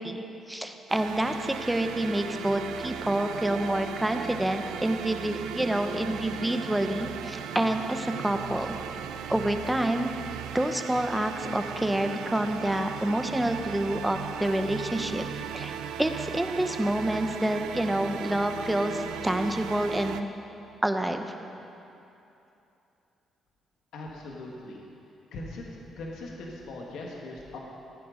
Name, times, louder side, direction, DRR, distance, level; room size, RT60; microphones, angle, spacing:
voice 1, 0.0-8.7 9.3-10.1 10.5-15.2 15.5-15.7 16.0-20.3 20.8-21.4, right 1 dB, 10° right, 6 dB, 0.9 m, -28 dB
sound 1, 0.9-20.2, right 8 dB, 90° right, 0.5 m, -37 dB
voice 2, 23.9-24.8 25.3-27.6, left 2 dB, 80° left, -2 dB, 1.8 m, -40 dB
16.0 x 9.2 x 5.2 m, 2.8 s
cardioid pair, 90°, 0 cm